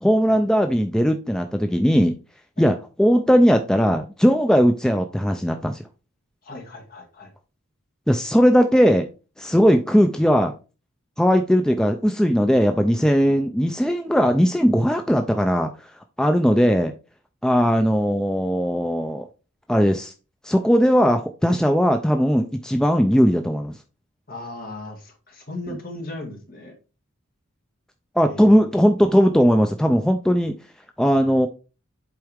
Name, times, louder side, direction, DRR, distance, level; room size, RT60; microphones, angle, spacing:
voice 1, 0.0-2.2 2.6-5.8 8.1-9.1 9.4-10.5 11.2-15.7 16.2-16.9 17.4-19.3 19.7-20.1 20.4-23.7 25.7-25.8 28.2-30.5 31.0-31.5, equal, 5° left, 5 dB, 0.3 m, -18 dB
voice 2, 6.4-7.3 17.6-17.7 24.3-26.7 28.2-28.8, left 2 dB, 45° left, 1 dB, 2.0 m, -37 dB
7.8 x 4.5 x 3.5 m, 0.33 s
head